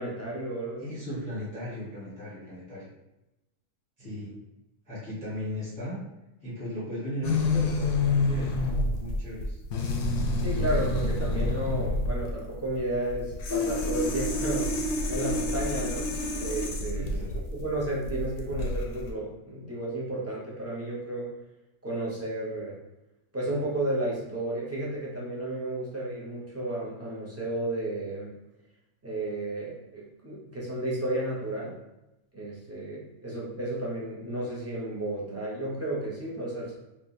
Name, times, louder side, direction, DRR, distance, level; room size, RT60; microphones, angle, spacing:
voice 1, 0.0-0.9 4.0-4.1 10.4-14.7 15.1-21.3 21.8-22.7 23.3-28.3 29.0-31.8 32.3-36.7, right 1 dB, 15° right, -6 dB, 0.6 m, -33 dB
voice 2, 0.8-2.9 4.0-4.3 4.8-6.0 6.4-9.6 16.9-17.4, equal, 5° left, -10 dB, 1.1 m, -37 dB
sound 1, 7.2-19.1, left 2 dB, 65° left, 0.8 m, -28 dB
4.4 x 2.6 x 2.6 m, 0.95 s
omnidirectional pair, 1.6 m